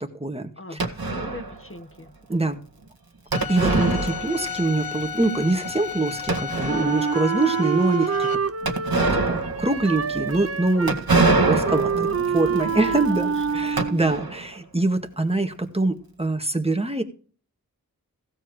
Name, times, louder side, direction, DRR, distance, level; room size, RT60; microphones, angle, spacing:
voice 1, 0.0-0.8 2.3-2.6 3.5-11.0 11.5-12.1 12.3-17.0, right 2 dB, 15° right, 5 dB, 1.8 m, -24 dB
voice 2, 0.6-2.1 11.9-12.3 12.8-14.0, left 2 dB, 35° left, 6 dB, 1.3 m, -41 dB
sound 1, 0.8-1.6 3.3-4.7 4.9-5.0 5.6-5.7 6.3-7.1 8.6-14.5, right 3 dB, 75° right, 1.9 m, -25 dB
Bowed string instrument, 3.3-8.3, left 7 dB, 70° left, 0.7 m, -33 dB
Wind instrument woodwind instrument, 6.6-14.2, right 6 dB, 40° right, 0.7 m, -27 dB
16.0 x 7.6 x 3.2 m, 0.41 s
wide cardioid pair, 45°, 36 cm